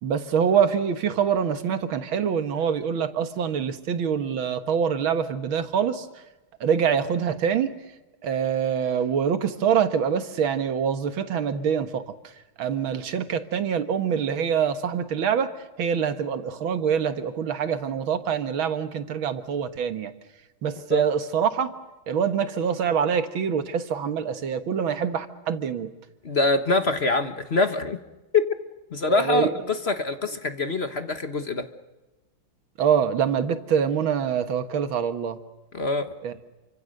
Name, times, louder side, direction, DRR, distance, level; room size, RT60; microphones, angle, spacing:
voice 1, 0.0-6.1 6.6-7.7 8.2-12.0 12.6-15.5 15.8-20.1 20.6-21.7 22.1-25.9 29.1-29.5 32.8-35.4 36.2-36.3, right 7 dB, 80° right, 9 dB, 2.2 m, -25 dB
voice 2, 26.2-28.0 28.3-28.5 28.9-31.7 35.7-36.1, left 3 dB, 35° left, 8 dB, 1.3 m, -24 dB
28.5 x 25.5 x 6.6 m, 1.1 s
omnidirectional pair, 2.2 m